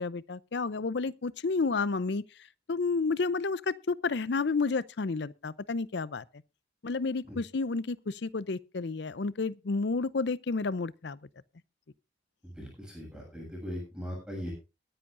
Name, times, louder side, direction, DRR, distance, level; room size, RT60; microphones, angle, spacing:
voice 1, 0.0-2.2 2.7-6.2 6.8-11.2, left 4 dB, 60° left, 0.5 m, -31 dB
voice 2, 12.4-14.5, equal, 5° right, 7.1 m, -39 dB
22.0 x 10.0 x 2.5 m
head